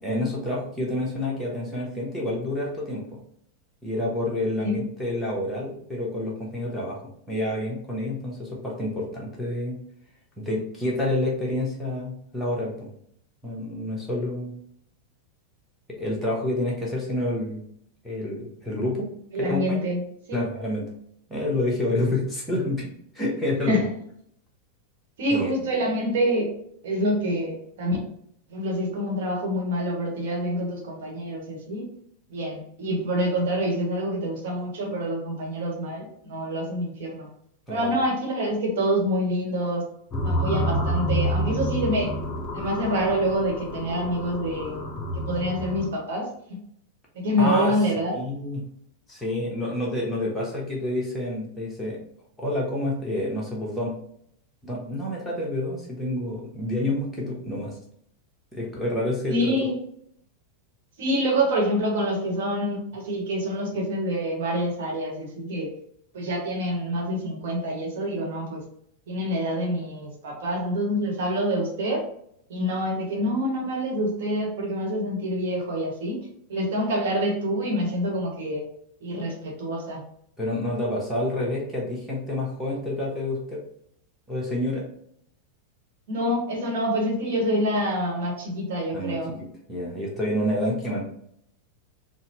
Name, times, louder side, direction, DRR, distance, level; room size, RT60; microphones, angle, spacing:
voice 1, 0.0-3.2 3.8-7.0 7.3-9.8 10.4-12.9 13.4-14.5 16.0-17.6 18.0-19.1 19.4-19.8 20.3-20.8 21.3-23.8 25.3-25.5 37.7-38.0 47.4-47.7 48.1-48.6 49.1-52.0 52.4-53.9 54.6-57.7 58.5-59.5 80.4-83.6 84.3-84.8 88.9-91.0, left 1 dB, 5° left, -5 dB, 1.0 m, -28 dB
voice 2, 19.3-20.0 20.3-20.5 23.7-23.8 25.2-26.5 26.8-28.0 28.5-31.9 32.3-37.3 37.7-39.9 40.2-42.1 42.5-44.8 45.1-46.6 47.2-48.2 59.3-59.8 61.0-65.7 66.1-68.6 69.1-72.1 72.5-78.7 79.0-80.0 86.1-89.3, equal, 55° right, -1 dB, 1.2 m, -26 dB
sound 1, 40.1-45.9, equal, 20° left, 0.9 m, -28 dB
4.0 x 2.2 x 3.0 m, 0.70 s
figure-of-eight pair, 90°, 0 cm